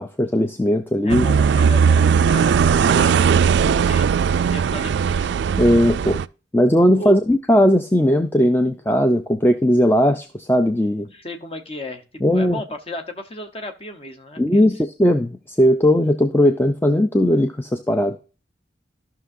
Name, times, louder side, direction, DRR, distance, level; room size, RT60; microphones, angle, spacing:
voice 1, 0.0-1.3 5.6-6.2 6.5-11.1 12.2-12.6 14.4-18.2, equal, 10° left, 8 dB, 0.4 m, -18 dB
voice 2, 1.0-5.3 7.0-7.2 11.1-14.7, left 1 dB, 30° left, 6 dB, 0.9 m, -35 dB
sound 1, 1.1-6.3, right 6 dB, 70° right, 0.3 m, -18 dB
14.0 x 6.0 x 2.6 m, 0.35 s
head